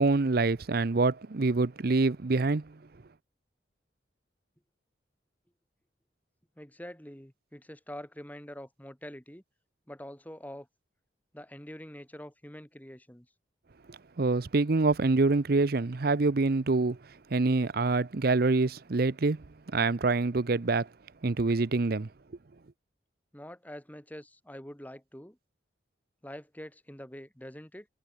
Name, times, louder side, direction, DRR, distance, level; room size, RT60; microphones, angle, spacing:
voice 1, 0.0-2.8 13.9-17.0 17.3-20.9 21.2-22.1, right 3 dB, 50° right, 0.7 m, -26 dB
voice 2, 6.6-9.4 9.9-10.7 11.3-13.3 23.3-25.4 26.2-27.9, equal, 10° left, 2.6 m, -45 dB
head